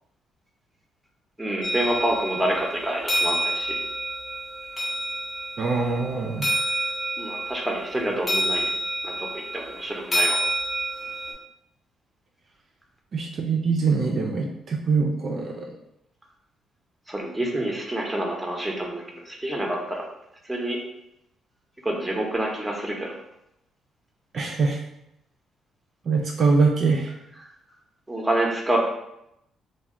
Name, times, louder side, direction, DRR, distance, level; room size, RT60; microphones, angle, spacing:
voice 1, 1.4-3.8 6.5-6.6 7.2-8.7 9.0-10.4 17.1-20.0 20.4-20.8 21.8-23.1 28.1-28.8, right 1 dB, 5° right, -1 dB, 0.6 m, -27 dB
sound 1, 1.6-11.3, right 1 dB, 25° left, 0.8 m, -28 dB
voice 2, 5.6-6.5 13.1-15.7 24.3-24.8 26.0-27.1, right 4 dB, 55° right, 0 dB, 0.3 m, -23 dB
2.2 x 2.1 x 3.5 m, 0.82 s
cardioid pair, 90°, 0 cm